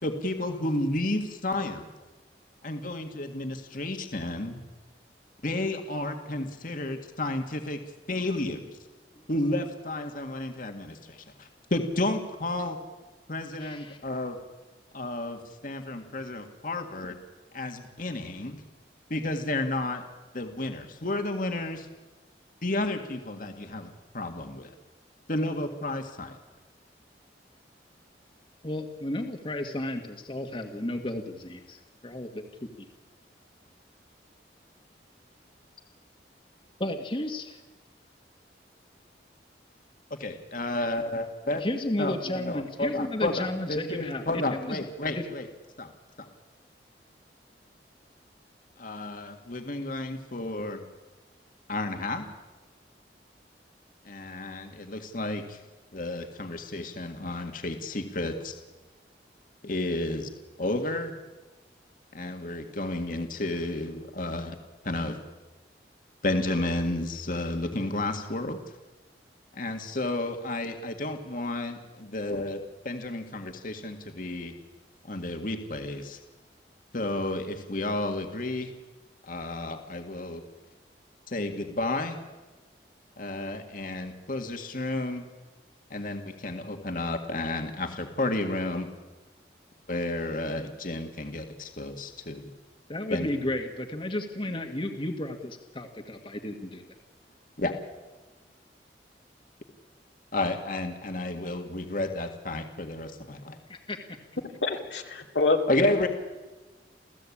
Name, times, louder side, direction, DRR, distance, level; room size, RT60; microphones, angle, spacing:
voice 1, 0.0-1.8 2.6-4.6 5.4-7.8 8.1-8.6 9.3-12.8 13.3-14.4 14.9-17.2 17.5-18.6 19.1-20.0 20.3-21.9 22.6-24.7 25.3-26.4 40.1-41.6 42.0-45.5 45.8-45.9 46.2-46.3 48.8-50.9 51.7-52.3 54.1-55.6 55.9-58.5 59.6-60.3 60.6-61.1 62.1-64.6 64.8-65.2 66.2-68.6 69.5-74.5 75.1-76.2 76.9-78.7 79.3-80.4 81.3-82.2 83.2-85.3 85.9-88.9 89.9-92.5 93.1-93.3 97.6-97.7 100.3-103.6 105.7-106.1, left 2 dB, 50° left, 5 dB, 2.0 m, -31 dB
voice 2, 13.6-14.0 28.6-32.4 32.8-32.9 36.8-37.6 41.6-44.2 44.5-44.8 45.2-45.3 92.9-96.8 103.7-104.0, left 1 dB, 30° left, 4 dB, 1.7 m, -33 dB
voice 3, 104.6-105.6, left 3 dB, 85° left, 3 dB, 2.6 m, -26 dB
29.0 x 15.5 x 8.7 m, 1.2 s
head